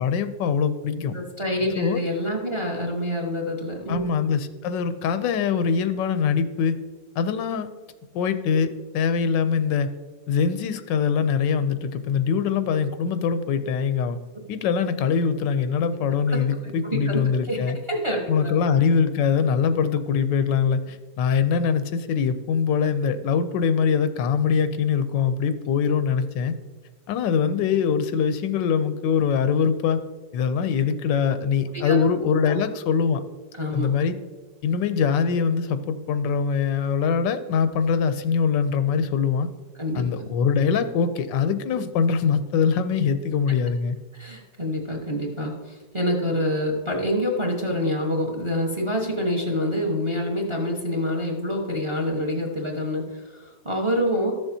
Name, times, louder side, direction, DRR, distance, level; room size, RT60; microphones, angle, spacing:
voice 1, 0.0-1.2 1.8-2.0 3.9-6.8 7.2-7.7 8.1-9.9 10.3-14.2 14.5-17.8 18.3-26.6 27.1-30.0 30.3-33.2 33.7-34.1 34.6-39.5 39.9-44.0, left 6 dB, 90° left, 11 dB, 1.3 m, -23 dB
voice 2, 1.1-4.1 16.0-16.4 16.6-18.6 31.7-32.0 32.5-32.6 33.6-33.9 39.8-40.3 44.1-54.3, equal, 20° right, 1 dB, 0.8 m, -27 dB
13.5 x 7.0 x 2.7 m, 1.3 s
omnidirectional pair, 1.9 m